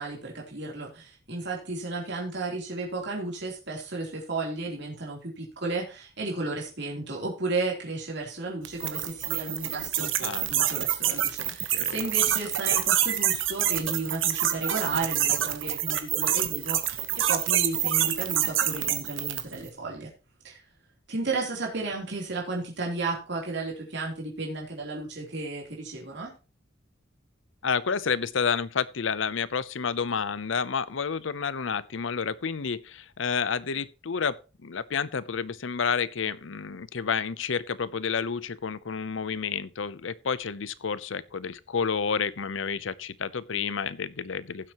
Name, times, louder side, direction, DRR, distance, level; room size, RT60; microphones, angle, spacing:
voice 1, 0.0-20.1 20.4-20.6 21.1-26.3, right 3 dB, 60° right, 3.4 m, -33 dB
sound 1, 8.6-19.6, right 11 dB, 85° right, 1.3 m, -26 dB
voice 2, 27.6-44.7, left 6 dB, 80° left, 0.7 m, -30 dB
16.0 x 7.5 x 3.0 m
head